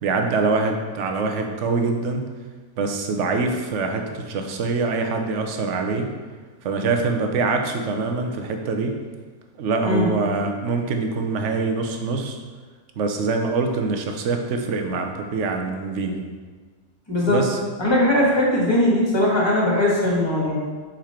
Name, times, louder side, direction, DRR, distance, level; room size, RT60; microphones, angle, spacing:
voice 1, 0.0-2.2 2.8-6.1 6.6-9.0 9.6-12.4 13.0-16.2 17.3-17.6, right 4 dB, 60° right, 4 dB, 0.9 m, -24 dB
voice 2, 17.1-17.4 17.8-20.7, left 1 dB, 15° left, -5 dB, 1.6 m, -20 dB
5.5 x 5.1 x 4.3 m, 1.5 s
omnidirectional pair, 1.6 m